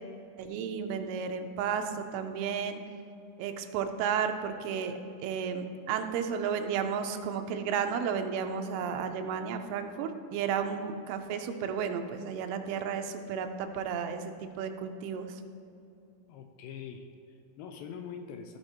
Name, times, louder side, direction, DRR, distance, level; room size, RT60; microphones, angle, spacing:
voice 1, 0.4-2.8 3.4-4.9 5.2-15.4, right 7 dB, 85° right, 7 dB, 2.7 m, -33 dB
voice 2, 16.3-18.6, left 7 dB, 80° left, 5 dB, 2.2 m, -44 dB
14.0 x 4.9 x 4.5 m, 2.7 s
omnidirectional pair, 4.5 m